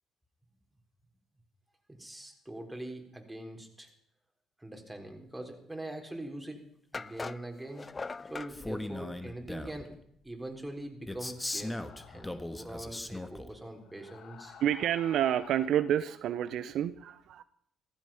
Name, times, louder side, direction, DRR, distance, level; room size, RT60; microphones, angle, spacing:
voice 1, 1.9-3.9 4.6-10.0 10.2-11.8 12.1-14.6, right 1 dB, 10° right, 4.2 m, -43 dB
sound 1, 6.1-6.2 6.9-8.5, left 4 dB, 30° left, 0.5 m, -40 dB
Male speech man speaking, 8.5-9.8 11.1-13.5, left 1 dB, 15° left, 1.7 m, -38 dB
sound 2, 11.4-12.6 13.8-16.0, left 7 dB, 60° left, 1.6 m, -52 dB
voice 2, 14.6-17.4, right 10 dB, 65° right, 0.6 m, -29 dB
15.5 x 15.0 x 5.8 m
hypercardioid pair, 55°, 0 cm